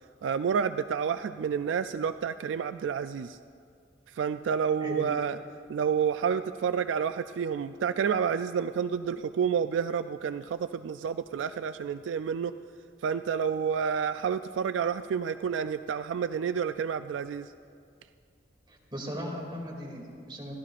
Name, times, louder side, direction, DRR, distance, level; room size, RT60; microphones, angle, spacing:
voice 1, 0.2-3.4 4.1-5.4 5.7-12.5 13.0-17.5, right 7 dB, 75° right, 11 dB, 0.3 m, -29 dB
voice 2, 18.7-20.5, equal, 25° right, -2 dB, 2.5 m, -38 dB
28.5 x 13.0 x 2.5 m, 2.3 s
head